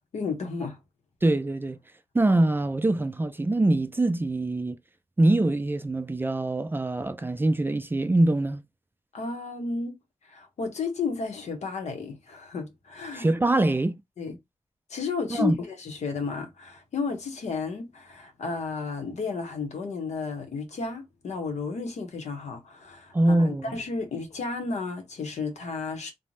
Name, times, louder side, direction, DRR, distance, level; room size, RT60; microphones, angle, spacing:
voice 1, 0.1-0.8 9.1-9.9 10.3-13.3 14.2-14.4 14.9-26.1, left 4 dB, 90° left, 0.8 m, -33 dB
voice 2, 1.2-1.8 2.1-4.8 5.2-8.6 13.1-13.9 15.3-15.6 23.1-23.7, right 2 dB, 20° right, 0.3 m, -23 dB
2.6 x 2.0 x 3.0 m
cardioid pair, 65°, 11 cm